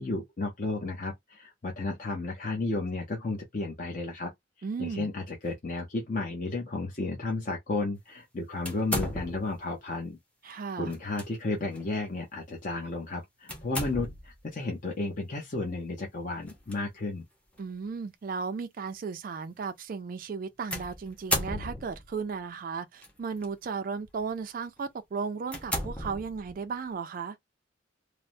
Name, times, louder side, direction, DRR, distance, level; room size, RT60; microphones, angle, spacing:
voice 1, 0.0-4.3 4.8-10.2 10.4-17.2, left 2 dB, 45° left, 0.6 m, -33 dB
voice 2, 4.6-5.1 10.4-10.9 17.6-27.4, right 5 dB, 45° right, 0.3 m, -35 dB
sound 1, 8.6-9.6 10.9-11.3 11.7-11.9 13.5-14.4 16.4-16.8 17.6-17.7 20.7-22.1 23.0-23.5 24.0-24.2 24.8-24.9 25.5-26.7, equal, 5° left, 0.6 m, -34 dB
3.1 x 2.0 x 2.5 m
head